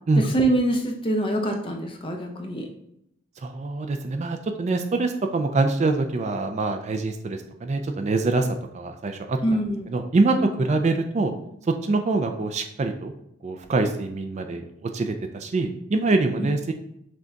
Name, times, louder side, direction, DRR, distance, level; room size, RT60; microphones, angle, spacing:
voice 1, 0.2-2.7 9.4-9.9, right 1 dB, 25° left, 2 dB, 0.6 m, -24 dB
voice 2, 3.4-8.5 8.7-9.4 9.9-11.3 11.7-13.1 13.4-16.7, right 3 dB, 35° right, 6 dB, 0.3 m, -24 dB
6.1 x 2.3 x 3.9 m, 0.77 s
head